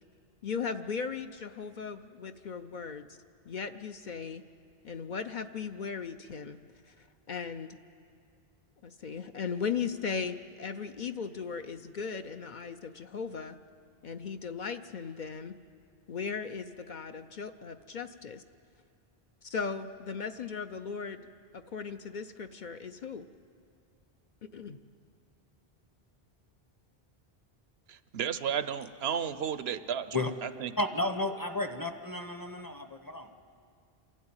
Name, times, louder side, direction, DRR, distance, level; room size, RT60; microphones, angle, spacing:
voice 1, 0.4-3.2 3.5-4.4 4.8-6.6 6.9-7.8 8.8-13.6 14.0-15.6 16.1-18.4 19.4-23.3 24.5-24.8, left 5 dB, 55° left, 8 dB, 0.7 m, -37 dB
voice 2, 27.9-30.2 30.4-30.7, right 8 dB, 80° right, 13 dB, 0.9 m, -33 dB
voice 3, 30.8-33.5, left 2 dB, 20° left, 7 dB, 0.8 m, -33 dB
27.0 x 12.0 x 8.8 m, 2.4 s
omnidirectional pair, 1.1 m